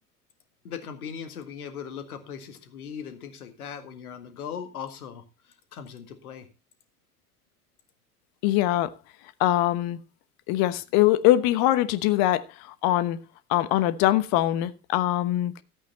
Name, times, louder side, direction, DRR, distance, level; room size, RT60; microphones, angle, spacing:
voice 1, 0.6-5.2 5.7-6.5, left 7 dB, 70° left, 1.9 m, -39 dB
voice 2, 8.4-8.9 9.4-10.0 10.5-12.4 12.8-13.2 13.5-15.6, left 14 dB, 50° left, 1.1 m, -22 dB
13.5 x 8.7 x 3.9 m
figure-of-eight pair, 70°, 46 cm